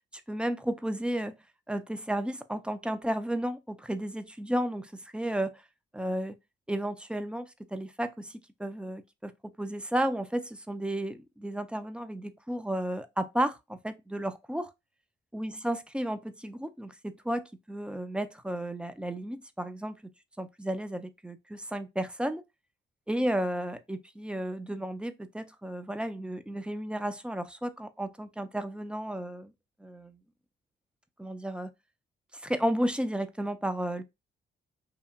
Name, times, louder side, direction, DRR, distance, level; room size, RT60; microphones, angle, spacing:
voice 1, 0.1-1.4 1.7-5.6 5.9-6.4 6.7-9.3 9.6-14.7 15.3-20.0 20.4-22.4 23.1-29.5 29.8-30.2 31.2-31.7 32.3-34.0, right 1 dB, 5° right, 0.3 m, -33 dB
2.8 x 2.4 x 2.3 m
cardioid pair, 90°, 20 cm